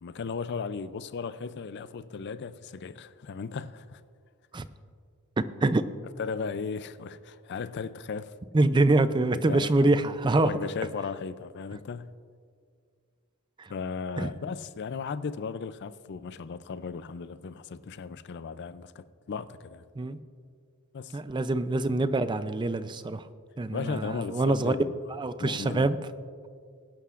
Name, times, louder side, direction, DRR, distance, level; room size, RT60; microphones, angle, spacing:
voice 1, 0.0-4.0 6.2-8.3 9.3-9.9 10.4-12.1 13.7-19.9 20.9-21.2 23.7-25.0 25.3-25.9, left 5 dB, 55° left, 0.4 m, -36 dB
voice 2, 5.4-5.8 8.5-10.5 13.6-13.7 14.2-14.3 20.0-20.2 21.1-23.2 23.6-24.8 25.1-26.0, right 2 dB, 20° right, 0.4 m, -25 dB
20.5 x 11.5 x 2.5 m
head